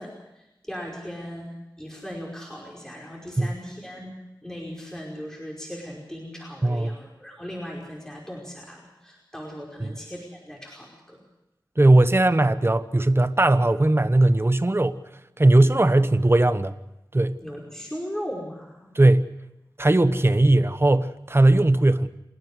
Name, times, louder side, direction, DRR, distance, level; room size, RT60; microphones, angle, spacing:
voice 1, 0.0-4.2 4.4-11.2 17.4-19.0, equal, 5° left, 5.2 m, -38 dB
voice 2, 6.6-7.0 9.8-9.9 11.8-15.0 15.4-16.7 17.1-17.4 18.9-19.3 19.8-22.1, right 2 dB, 30° right, 1.1 m, -19 dB
28.0 x 10.0 x 9.8 m
cardioid pair, 45°, 8 cm